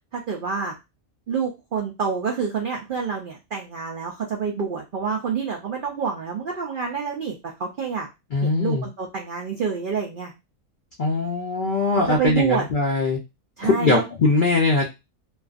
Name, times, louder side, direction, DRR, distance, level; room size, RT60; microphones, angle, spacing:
voice 1, 0.1-0.8 1.3-8.1 8.4-10.3 12.1-12.6 13.6-14.1, right 6 dB, 75° right, 0 dB, 0.4 m, -27 dB
voice 2, 8.3-8.8 11.0-13.2 13.6-14.8, left 3 dB, 80° left, 0 dB, 0.4 m, -21 dB
2.5 x 2.3 x 2.4 m, 0.24 s
omnidirectional pair, 1.5 m